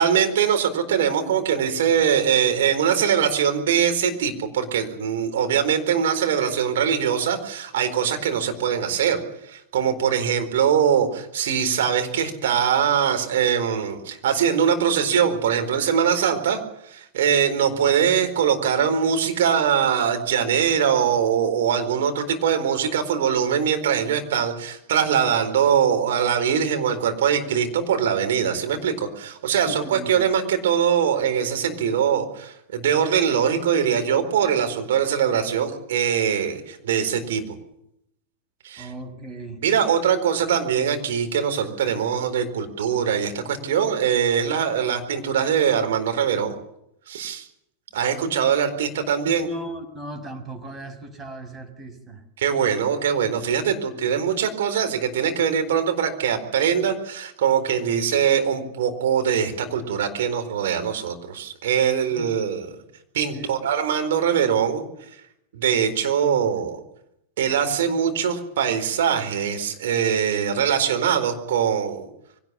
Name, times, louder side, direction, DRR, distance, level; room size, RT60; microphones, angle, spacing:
voice 1, 0.0-16.6 16.9-37.4 38.6-38.9 39.6-46.5 47.1-47.4 47.9-49.5 52.4-62.7 63.1-64.8 65.5-66.8 67.4-72.1, right 8 dB, 60° right, 6 dB, 4.3 m, -22 dB
voice 2, 29.6-30.2 38.8-39.6 49.3-52.2 62.1-62.3 63.3-63.5, equal, 15° right, 6 dB, 5.6 m, -36 dB
24.0 x 18.0 x 7.1 m, 0.77 s
figure-of-eight pair, 90°, 0 cm